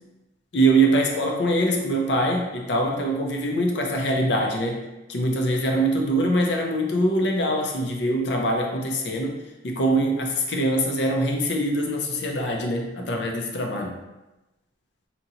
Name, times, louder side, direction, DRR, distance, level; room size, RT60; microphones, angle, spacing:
voice 1, 0.5-4.8 5.1-9.4 9.6-14.0, right 1 dB, 70° left, 1 dB, 0.6 m, -23 dB
2.9 x 2.8 x 4.0 m, 1.0 s
head